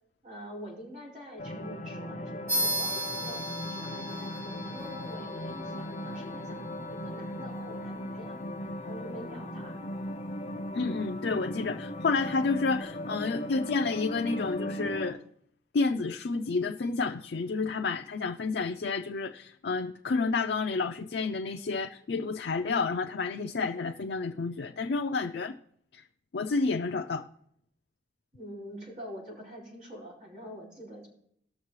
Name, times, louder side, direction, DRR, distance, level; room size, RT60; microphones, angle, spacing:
voice 1, 0.2-3.4 3.7-8.4 8.8-9.8 28.3-31.1, equal, 50° right, 5.0 m, -45 dB
sound 1, 1.4-15.1, left 1 dB, 40° left, 0.7 m, -37 dB
sound 2, 2.5-12.4, equal, 15° right, 1.7 m, -38 dB
voice 2, 10.7-15.2 15.7-25.6 25.9-26.0 26.3-27.3, left 4 dB, 75° left, 0.4 m, -30 dB
19.0 x 6.6 x 3.2 m
head